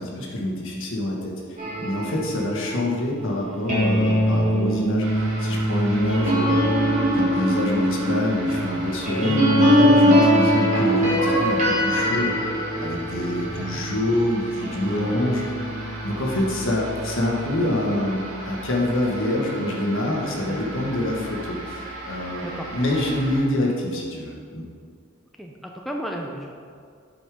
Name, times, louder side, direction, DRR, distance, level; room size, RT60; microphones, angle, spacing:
voice 1, 0.0-1.3 1.8-6.8 7.1-12.4 12.8-15.4 16.0-24.6, left 1 dB, 60° left, -2 dB, 1.5 m, -26 dB
sound 1, 1.6-14.1 14.6-17.5, equal, 35° right, 2.1 m, -22 dB
sound 2, 5.0-23.4, right 2 dB, 80° right, 1.9 m, -37 dB
voice 2, 25.4-26.5, equal, ahead, 0 dB, 0.4 m, -34 dB
8.0 x 5.4 x 5.0 m, 2.2 s
head